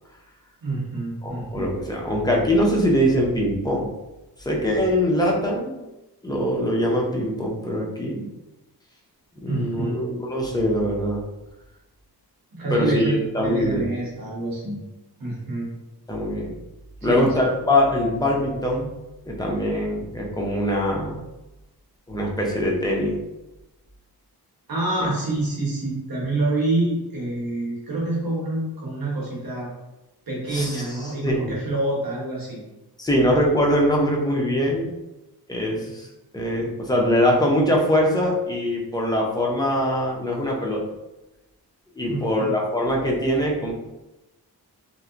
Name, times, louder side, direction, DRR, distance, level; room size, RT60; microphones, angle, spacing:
voice 1, 0.6-1.7 9.5-10.0 12.5-13.2 13.4-14.8 15.2-15.7 17.0-17.3 24.7-29.7 30.3-32.6 42.1-42.5, right 2 dB, 60° right, -4 dB, 1.0 m, -27 dB
voice 2, 1.2-3.9 4.4-5.8 6.2-8.2 9.3-11.2 12.7-13.8 16.1-16.5 17.0-18.9 19.3-21.2 22.1-23.2 30.5-31.5 33.0-34.9 35.5-36.1 36.3-40.8 41.9-43.7, equal, 10° left, -2 dB, 0.4 m, -22 dB
2.7 x 2.1 x 2.4 m, 0.99 s
wide cardioid pair, 100°, 39 cm